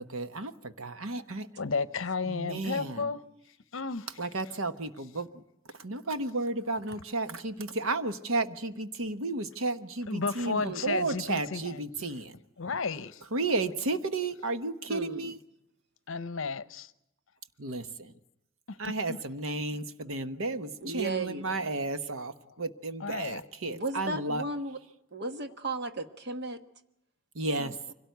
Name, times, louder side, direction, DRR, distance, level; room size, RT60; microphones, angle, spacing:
voice 1, 0.0-1.5 2.3-3.1 4.2-5.4 5.8-12.3 13.3-15.4 17.6-18.1 18.8-24.4 27.3-27.8, right 2 dB, 70° right, 1.1 m, -33 dB
voice 2, 1.5-3.2 3.7-4.6 6.9-7.0 10.1-11.8 12.6-13.2 13.7-13.8 14.2-14.3 16.1-16.9 18.7-19.2 22.5-22.6 23.0-23.4, left 4 dB, 60° left, 0.8 m, -34 dB
voice 3, 10.6-11.0 14.9-15.3 20.8-21.6 23.7-24.8 25.1-26.6 27.6-27.9, right 2 dB, 50° right, 1.3 m, -35 dB
24.5 x 17.5 x 9.3 m
head